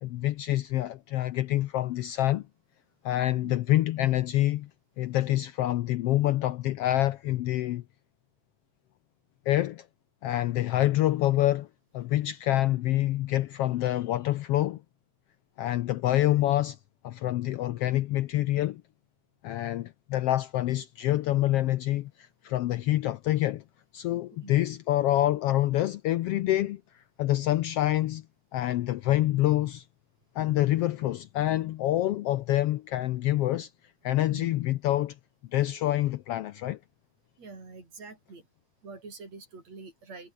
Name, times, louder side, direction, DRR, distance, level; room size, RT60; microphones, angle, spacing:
voice 1, 0.0-2.5 3.0-4.7 5.0-7.8 9.5-9.9 10.2-11.7 11.9-14.8 15.6-16.8 17.0-18.8 19.4-23.6 23.9-28.2 28.5-29.8 30.3-33.7 34.0-35.1 35.5-36.8, left 14 dB, 80° left, 1.4 m, -26 dB
voice 2, 34.3-34.6 37.4-38.5 38.8-40.3, right 3 dB, 60° right, 8.3 m, -46 dB
omnidirectional pair, 3.4 m